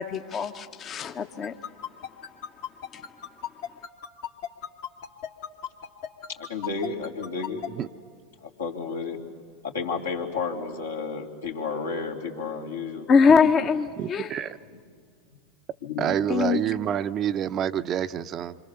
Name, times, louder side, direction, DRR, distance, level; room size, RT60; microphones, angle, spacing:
voice 1, 0.0-1.5 2.9-3.0 13.1-14.4 16.3-16.6, left 5 dB, 35° left, 7 dB, 0.9 m, -22 dB
sound 1, 1.4-7.7, left 9 dB, 60° left, 1.8 m, -34 dB
voice 2, 6.4-7.7 8.4-9.2 9.6-13.1 13.4-13.7 14.7-14.8 15.8-16.1, left 4 dB, 80° left, 0 dB, 2.9 m, -32 dB
voice 3, 14.0-14.6 16.0-18.6, right 9 dB, 40° right, 12 dB, 0.6 m, -28 dB
27.0 x 25.0 x 6.9 m, 2.1 s
hypercardioid pair, 85°, 0 cm